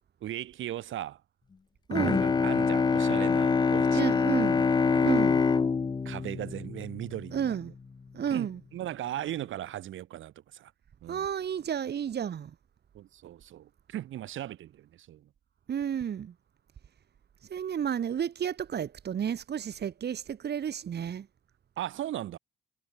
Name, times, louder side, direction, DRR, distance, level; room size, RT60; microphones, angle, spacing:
voice 1, 0.2-1.2 2.1-4.0 4.9-5.1 6.1-7.7 8.3-10.7 11.0-11.3 12.9-15.3 21.8-22.4, right 12 dB, 80° right, 5.1 m, -38 dB
Bowed string instrument, 1.9-7.5, left 5 dB, 20° left, 0.5 m, -25 dB
voice 2, 1.9-2.4 3.9-5.4 7.3-7.7 8.1-8.6 11.1-12.5 15.7-16.3 17.5-21.3, right 8 dB, 55° right, 4.2 m, -32 dB
cardioid pair, 90°, 20 cm